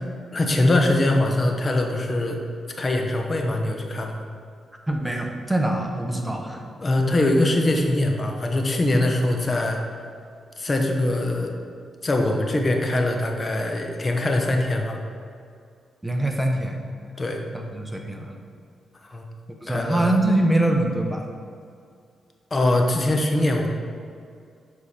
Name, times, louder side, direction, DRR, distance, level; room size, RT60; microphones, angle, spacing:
voice 1, 0.3-2.4 2.8-4.2 6.8-9.8 10.6-11.5 12.0-15.0 17.2-17.4 19.0-19.2 19.7-20.1 22.5-23.7, left 1 dB, 35° left, 3 dB, 0.9 m, -22 dB
voice 2, 4.9-6.6 16.0-16.8 17.5-18.3 19.6-21.3, right 1 dB, 10° right, 2 dB, 0.9 m, -24 dB
7.2 x 4.9 x 4.3 m, 2.3 s
cardioid pair, 75°, 0 cm